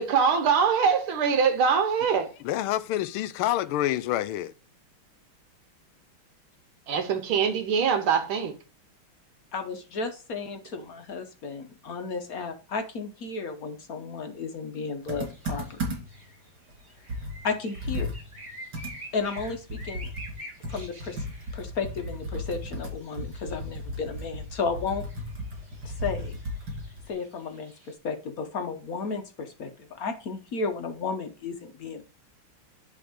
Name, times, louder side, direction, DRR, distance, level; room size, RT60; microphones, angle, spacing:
voice 1, 0.0-2.3 6.9-8.5, right 6 dB, 75° right, 1.7 m, -23 dB
voice 2, 2.4-4.5, left 13 dB, 80° left, 1.4 m, -27 dB
voice 3, 9.5-15.9 17.4-18.1 19.1-20.1 20.7-21.2 21.5-25.0 25.8-26.4 27.1-29.7 29.9-32.0, left 4 dB, 60° left, 1.0 m, -33 dB
sound 1, 15.1-27.9, right 1 dB, 10° right, 3.9 m, -48 dB
Computer keyboard, 15.1-16.3 16.7-16.8 17.1-20.4 20.6-27.1, equal, 55° right, 3.4 m, -35 dB
10.5 x 3.6 x 5.0 m
omnidirectional pair, 2.4 m